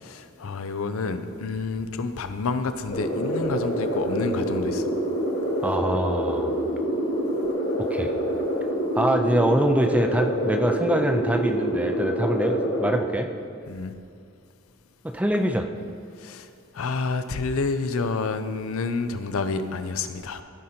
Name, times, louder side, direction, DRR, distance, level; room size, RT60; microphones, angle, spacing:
voice 1, 0.0-4.9 13.7-13.9 16.2-16.5 16.7-20.4, left 4 dB, 85° left, 10 dB, 0.5 m, -29 dB
sound 1, 2.9-12.9, equal, 55° left, 1.7 m, -26 dB
voice 2, 5.6-6.6 7.8-8.1 8.9-13.3 15.0-15.7, right 1 dB, 5° right, 6 dB, 0.4 m, -24 dB
15.0 x 5.1 x 4.4 m, 2.3 s
head